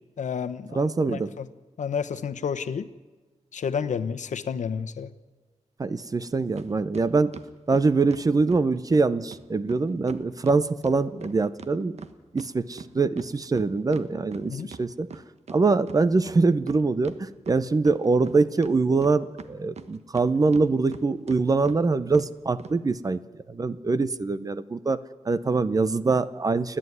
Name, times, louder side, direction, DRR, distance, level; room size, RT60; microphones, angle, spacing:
voice 1, 0.2-1.5 1.8-2.9 3.5-5.1 14.5-14.7, left 6 dB, 85° left, 11 dB, 1.0 m, -30 dB
voice 2, 0.7-1.3 5.8-7.3 7.7-12.0 12.3-15.1 15.5-23.2 23.5-25.0 25.3-26.8, right 3 dB, 30° right, 15 dB, 0.7 m, -24 dB
sound 1, 6.6-6.7 6.9-8.7 8.9-9.0 9.3-9.4 9.7-9.8 10.1-12.5 12.8-15.6 15.9-16.0 16.3-17.2 17.5-18.3 18.6-20.3 20.5-21.0 21.3-21.4 21.7-21.8 22.1-22.3 22.6-22.7, right 5 dB, 65° right, 1.2 m, -42 dB
29.5 x 10.0 x 9.5 m, 1.3 s
wide cardioid pair, 175°, 12 cm